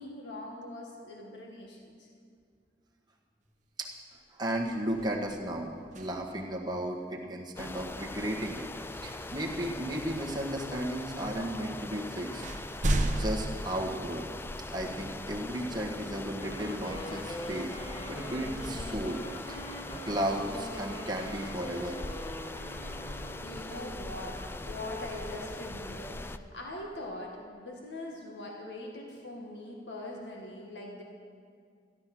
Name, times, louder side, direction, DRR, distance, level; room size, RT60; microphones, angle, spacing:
voice 1, 0.0-2.1 23.4-24.4 24.6-31.0, left 1 dB, 80° left, -1 dB, 1.8 m, -42 dB
sound 1, 3.8-4.1 4.5-6.6 8.7-8.9 9.7-10.4 11.3-11.4 11.8-14.7 15.2-15.3 17.9-20.1, right 1 dB, 45° right, 0.9 m, -35 dB
voice 2, 4.3-12.4 13.2-14.2 14.7-17.8 18.1-19.2 19.5-19.6 20.0-22.0, right 1 dB, 25° right, -1 dB, 1.5 m, -34 dB
sound 2, 7.6-26.4, left 2 dB, 15° left, 0.3 m, -41 dB
Wind instrument woodwind instrument, 16.4-23.8, equal, 30° left, 1.3 m, -43 dB
13.0 x 12.0 x 6.1 m, 2.2 s
head